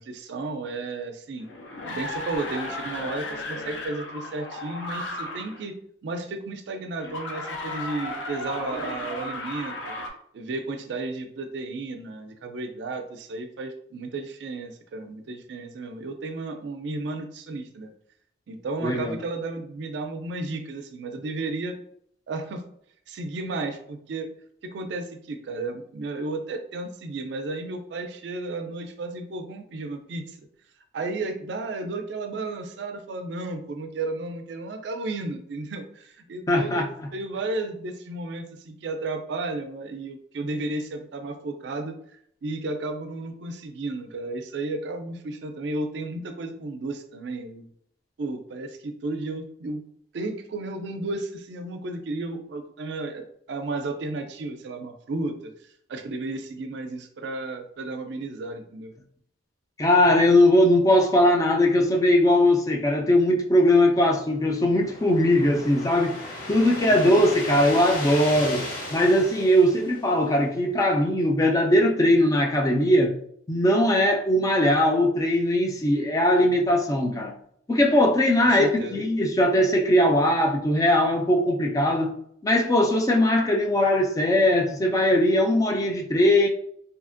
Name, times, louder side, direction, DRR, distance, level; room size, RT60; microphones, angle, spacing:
voice 1, 0.0-1.5 1.8-5.7 6.0-9.9 10.3-17.9 18.5-21.8 22.3-22.6 23.1-24.3 24.6-30.4 30.9-42.0 42.4-47.7 48.2-49.8 50.1-55.5 55.9-58.9 66.8-67.2 78.4-79.0, right 2 dB, 65° right, 0.4 m, -33 dB
sound 1, 1.4-5.6 7.0-10.1, left 2 dB, 75° left, 0.5 m, -34 dB
voice 2, 18.8-19.2 36.5-37.1 59.8-66.2 66.5-68.7 68.9-73.1 73.5-77.3 77.7-82.1 82.4-86.5, left 1 dB, 20° left, 0.3 m, -20 dB
sound 2, 64.0-70.5, left 2 dB, 50° left, 0.9 m, -36 dB
2.7 x 2.4 x 2.4 m
head